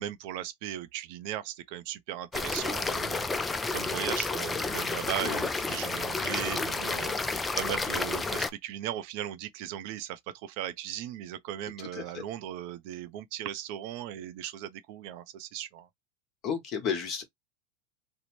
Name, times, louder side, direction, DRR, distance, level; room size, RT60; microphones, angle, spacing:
voice 1, 0.0-15.9, right 12 dB, 60° right, 0.5 m, -38 dB
sound 1, 2.3-8.5, left 3 dB, 15° left, 0.3 m, -31 dB
voice 2, 11.9-12.2 16.4-17.2, left 7 dB, 40° left, 1.0 m, -32 dB
2.7 x 2.1 x 2.9 m
supercardioid pair, 125°, 0 cm